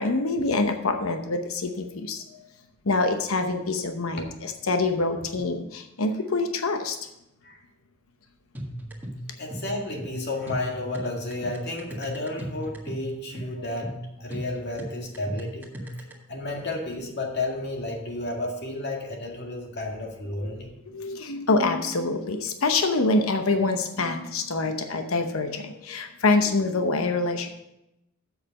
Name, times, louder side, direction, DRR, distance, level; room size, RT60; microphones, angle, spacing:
voice 1, 0.0-2.4 2.8-7.0 20.4-20.5 20.9-27.5, left 3 dB, 90° left, 6 dB, 0.9 m, -25 dB
sound 1, 8.5-16.1, equal, 10° right, 1.7 m, -37 dB
voice 2, 9.4-16.0 16.3-20.7, left 2 dB, 55° left, 1 dB, 2.0 m, -32 dB
7.7 x 6.6 x 6.5 m, 0.87 s
head